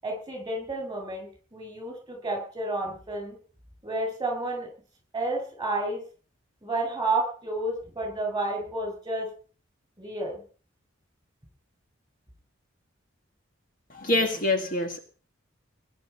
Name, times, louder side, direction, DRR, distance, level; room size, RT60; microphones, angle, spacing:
voice 1, 0.0-3.3 3.8-4.7 5.1-6.0 6.6-9.3 10.0-10.4, right 2 dB, 20° right, 5 dB, 7.6 m, -31 dB
voice 2, 13.9-15.0, left 2 dB, 40° left, 5 dB, 1.8 m, -25 dB
19.5 x 10.5 x 5.7 m, 0.41 s
head